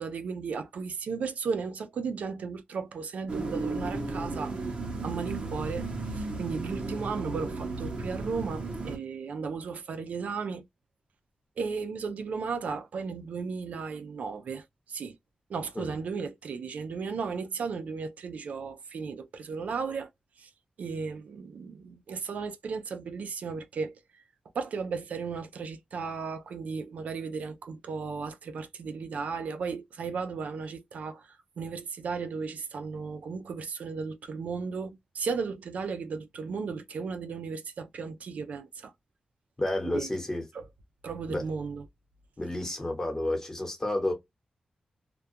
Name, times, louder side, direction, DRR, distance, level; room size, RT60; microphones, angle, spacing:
voice 1, 0.0-4.5 5.0-5.9 6.1-10.7 11.6-15.2 15.5-20.1 20.4-20.5 20.8-24.2 24.5-38.9 39.8-40.1 40.5-40.7 41.0-41.8, right 5 dB, 90° right, 0.4 m, -35 dB
sound 1, 3.3-9.0, right 3 dB, 45° right, 0.8 m, -34 dB
voice 2, 39.6-40.4 41.3-41.4 42.4-44.1, left 1 dB, 20° left, 1.1 m, -30 dB
2.3 x 2.2 x 2.6 m
wide cardioid pair, 130°, 2 cm